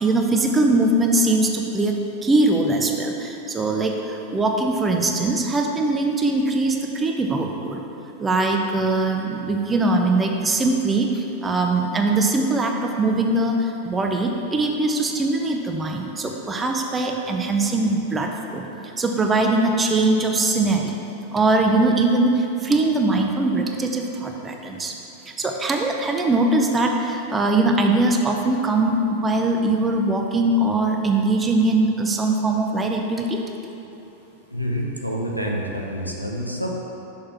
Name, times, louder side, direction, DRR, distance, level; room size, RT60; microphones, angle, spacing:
voice 1, 0.0-7.8 8.2-18.7 19.0-21.0 21.3-24.9 25.3-33.4, right 2 dB, 15° right, 2 dB, 0.6 m, -21 dB
voice 2, 34.5-36.7, equal, 90° right, -1 dB, 0.8 m, -27 dB
6.5 x 5.6 x 4.5 m, 2.9 s
figure-of-eight pair, 90°, 0 cm